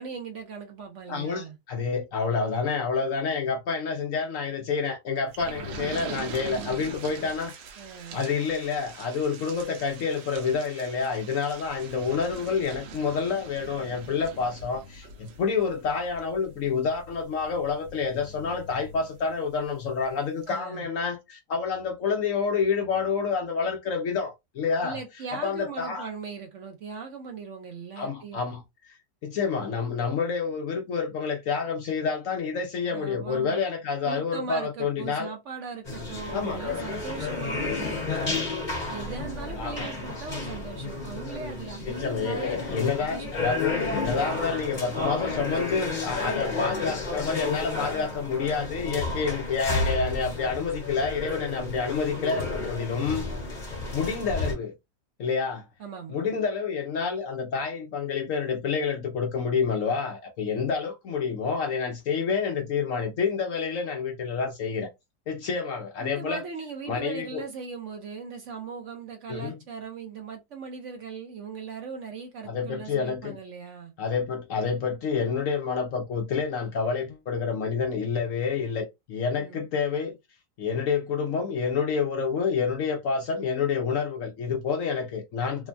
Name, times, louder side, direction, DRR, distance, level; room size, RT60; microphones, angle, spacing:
voice 1, 0.0-1.6 7.8-8.3 20.5-20.9 24.8-28.4 32.9-33.6 34.0-38.5 38.9-42.5 43.0-43.3 55.8-56.2 66.0-73.9 79.4-79.6, right 5 dB, 70° right, 0.7 m, -39 dB
voice 2, 1.1-7.5 8.1-25.0 25.4-26.1 28.0-28.6 29.2-35.3 36.3-36.6 39.6-39.9 41.9-53.3 53.9-54.7 55.2-55.6 56.1-64.9 65.3-66.4 66.9-67.4 69.3-69.6 72.5-73.4 74.0-80.2 80.6-85.7, left 5 dB, 70° left, 0.8 m, -28 dB
sound 1, 5.3-19.6 20.1-20.2 20.4-20.5, right 3 dB, 85° right, 1.4 m, -43 dB
sound 2, 35.8-54.6, left 3 dB, 30° left, 0.9 m, -32 dB
3.3 x 2.1 x 2.5 m
omnidirectional pair, 1.9 m